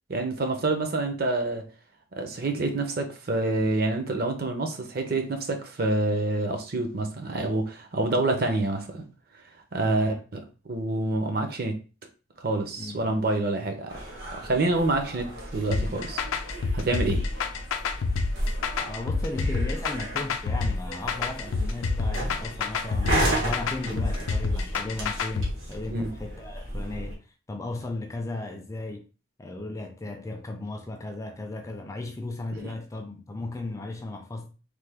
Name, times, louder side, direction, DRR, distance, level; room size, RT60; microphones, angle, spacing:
voice 1, 0.1-1.7 2.1-9.0 9.7-10.4 10.7-11.8 12.4-14.0 14.3-16.2 16.7-17.2 23.9-24.0 25.9-26.1 32.5-32.7, right 2 dB, 50° right, 0.6 m, -27 dB
voice 2, 9.9-10.2 12.8-13.0 18.8-29.0 29.4-34.5, left 2 dB, 15° left, 0.3 m, -36 dB
sound 1, 13.9-27.1, right 1 dB, 85° right, 1.2 m, -34 dB
sound 2, 15.7-25.5, left 4 dB, 90° left, 0.4 m, -28 dB
3.3 x 2.2 x 3.4 m
head